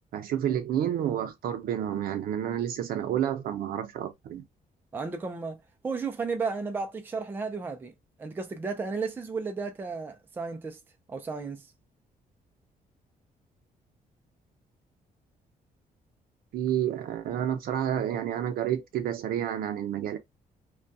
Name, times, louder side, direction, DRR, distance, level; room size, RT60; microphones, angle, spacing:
voice 1, 0.1-4.4 16.5-20.2, right 10 dB, 70° right, 0.6 m, -30 dB
voice 2, 4.9-7.9 8.2-10.8 11.1-11.7, right 4 dB, 15° right, 0.4 m, -33 dB
2.3 x 2.2 x 2.6 m
cardioid pair, 170°, 16 cm